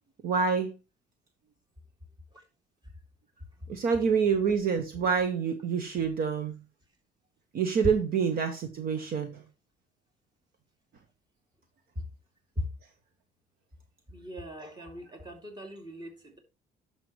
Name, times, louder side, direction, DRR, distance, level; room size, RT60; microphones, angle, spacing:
voice 1, 0.2-0.7 3.7-6.6 7.5-9.4, right 6 dB, 60° right, 1.2 m, -27 dB
voice 2, 14.1-16.4, left 1 dB, 25° right, 2.7 m, -39 dB
11.5 x 6.0 x 3.1 m
cardioid pair, 110°, 17 cm